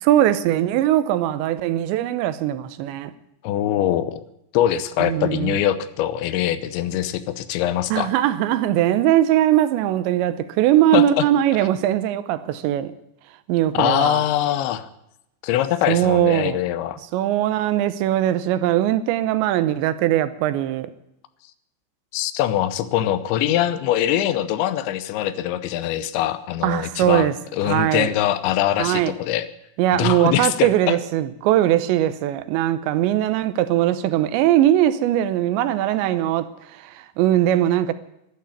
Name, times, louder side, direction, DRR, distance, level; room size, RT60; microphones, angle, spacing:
voice 1, 0.0-3.1 5.0-5.6 7.9-12.9 13.5-14.2 15.9-16.6 17.1-20.9 26.6-27.3 27.7-28.1 28.8-29.1 29.8-37.9, right 12 dB, 85° right, 3.1 m, -20 dB
voice 2, 3.4-4.2 4.5-8.1 10.9-11.2 13.7-14.9 15.4-17.0 22.1-29.5 30.0-31.0, left 12 dB, 85° left, 3.2 m, -23 dB
13.0 x 12.0 x 8.5 m
omnidirectional pair, 5.1 m